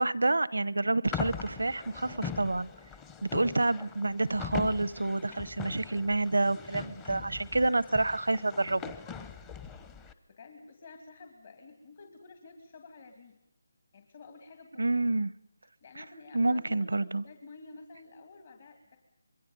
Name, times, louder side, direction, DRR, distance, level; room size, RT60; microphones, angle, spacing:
voice 1, 0.0-2.7 3.2-8.9 14.8-15.3 16.0-16.1 16.3-17.2, right 2 dB, 85° right, 19 dB, 0.8 m, -28 dB
sound 1, 1.1-10.1, left 6 dB, 15° left, 0.9 m, -41 dB
voice 2, 10.3-13.4 13.9-15.1 15.8-19.0, left 3 dB, 45° left, 3 dB, 2.5 m, -51 dB
26.5 x 22.5 x 5.5 m, 0.80 s
figure-of-eight pair, 160°, 0 cm